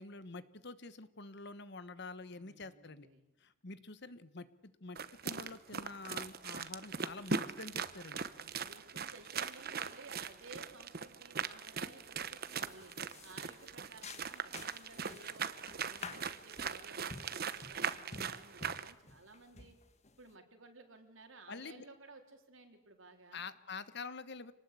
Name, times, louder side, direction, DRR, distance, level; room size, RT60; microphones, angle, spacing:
voice 1, 0.0-3.1 3.4-8.3 21.5-21.8 23.3-24.5, left 3 dB, 60° left, 14 dB, 1.3 m, -47 dB
voice 2, 2.3-3.2 8.3-12.9 13.2-15.5 15.8-19.8 20.2-23.5, right 3 dB, 85° right, 4 dB, 4.0 m, -56 dB
sound 1, 5.0-18.9, right 6 dB, 50° right, 1.1 m, -40 dB
sound 2, 12.0-12.3 12.7-20.3, left 4 dB, 35° left, 1.4 m, -51 dB
26.5 x 19.5 x 8.5 m, 0.90 s
head